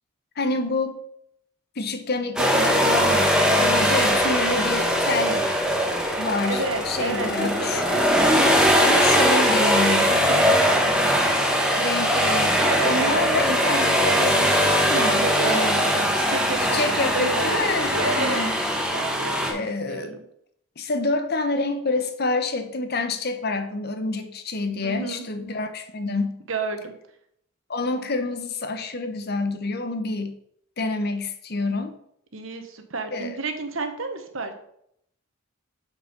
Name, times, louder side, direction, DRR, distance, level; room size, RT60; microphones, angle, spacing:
voice 1, 0.4-1.0 1.8-3.3 3.6-5.5 6.2-8.0 8.8-10.1 11.7-15.8 16.7-18.5 19.5-20.2 20.8-26.4 27.7-30.4 30.8-31.9 33.1-33.4, left 3 dB, 50° left, 8 dB, 1.0 m, -27 dB
sound 1, 2.4-19.5, equal, 5° right, 1.4 m, -21 dB
voice 2, 6.5-8.1 10.1-11.1 12.8-13.2 14.9-17.6 17.9-18.4 18.9-19.6 19.9-20.2 24.8-25.3 26.5-26.9 32.3-34.5, right 3 dB, 70° right, 6 dB, 1.3 m, -31 dB
7.3 x 6.0 x 5.3 m, 0.71 s
head